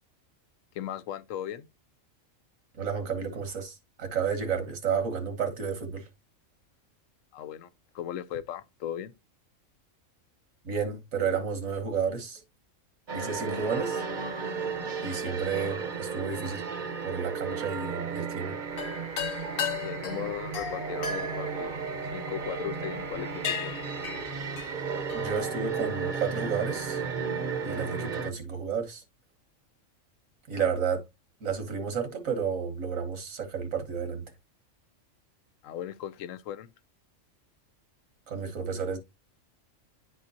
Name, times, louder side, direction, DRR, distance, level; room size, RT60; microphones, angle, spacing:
voice 1, 0.7-1.7 7.3-7.7 7.9-9.1 19.8-21.7 22.1-23.8 35.6-36.7, left 10 dB, 80° left, 1.0 m, -37 dB
voice 2, 2.8-6.1 10.7-12.4 13.1-14.0 15.0-16.6 17.0-18.6 25.1-27.0 27.6-29.0 30.5-31.0 31.4-34.2 38.3-39.0, right 6 dB, 85° right, 1.7 m, -31 dB
sound 1, 13.1-28.3, right 5 dB, 45° right, 0.8 m, -34 dB
sound 2, 18.7-22.5 23.0-23.2 23.4-25.4, left 7 dB, 55° left, 0.8 m, -35 dB
10.5 x 3.7 x 2.7 m
omnidirectional pair, 1.3 m